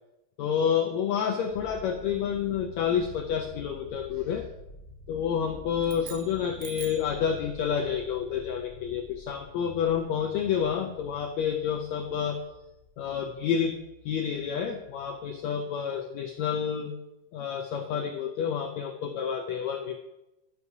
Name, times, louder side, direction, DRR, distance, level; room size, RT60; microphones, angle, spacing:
voice 1, 0.4-4.5 5.1-12.4 13.0-13.8 14.0-16.9 17.3-20.0, left 7 dB, 80° left, 5 dB, 1.6 m, -29 dB
sound 1, 1.5-15.4, left 2 dB, 25° left, 3.0 m, -48 dB
sound 2, 5.8-7.2, right 12 dB, 90° right, 1.7 m, -44 dB
11.0 x 10.5 x 2.7 m, 0.93 s
omnidirectional pair, 3.9 m